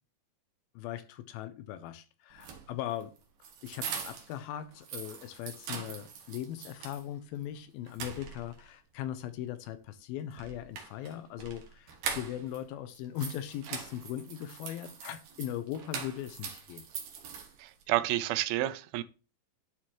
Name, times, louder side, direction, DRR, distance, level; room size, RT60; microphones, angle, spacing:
voice 1, 0.8-3.2 3.6-16.8, left 11 dB, 90° left, 2.5 m, -39 dB
sound 1, 2.3-4.4 4.7-7.0 7.4-7.5 7.9-8.7 10.3-12.6 12.9-17.8, right 6 dB, 70° right, 2.7 m, -42 dB
voice 2, 17.6-19.0, right 15 dB, 85° right, 2.4 m, -30 dB
11.0 x 4.3 x 3.0 m
omnidirectional pair, 4.2 m